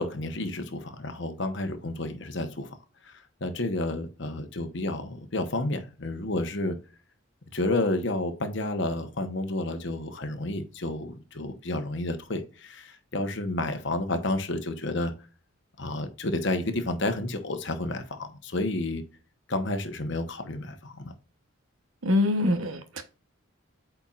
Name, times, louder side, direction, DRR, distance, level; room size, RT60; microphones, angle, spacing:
voice 1, 0.0-2.8 3.0-6.8 7.5-15.1 15.8-19.0 19.5-21.1, left 2 dB, 55° left, 1.0 m, -30 dB
voice 2, 22.0-23.0, left 2 dB, 75° right, 1.1 m, -24 dB
8.5 x 4.5 x 2.5 m
head